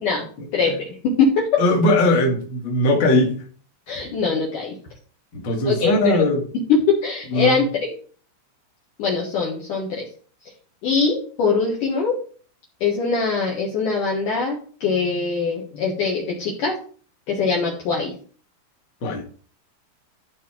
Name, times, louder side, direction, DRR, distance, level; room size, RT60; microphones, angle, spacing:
voice 1, 0.5-1.6 3.9-4.8 5.7-6.2 6.7-7.9 9.0-10.0 10.8-12.1 12.8-16.7 17.3-18.1, left 4 dB, 60° left, 2.4 m, -22 dB
voice 2, 1.6-3.4 5.3-6.4 7.3-7.6 19.0-19.2, left 1 dB, 40° left, 1.9 m, -19 dB
13.5 x 4.9 x 4.5 m
omnidirectional pair, 5.8 m